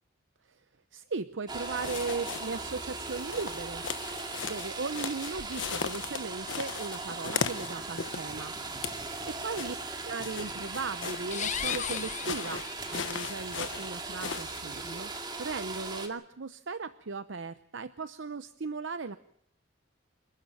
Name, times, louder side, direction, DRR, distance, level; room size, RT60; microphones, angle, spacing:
voice 1, 0.9-4.1 4.4-8.5 9.4-9.7 10.0-12.6 12.9-19.2, right 4 dB, 70° right, 12 dB, 0.7 m, -37 dB
sound 1, 1.5-16.1, right 3 dB, 20° right, 2.3 m, -39 dB
sound 2, 1.7-2.8 3.1-8.4 8.7-9.1 9.5-14.6, left 6 dB, 70° left, 1.1 m, -38 dB
sound 3, 11.2-13.2, left 8 dB, 40° left, 0.9 m, -36 dB
28.0 x 11.5 x 9.1 m, 0.70 s
head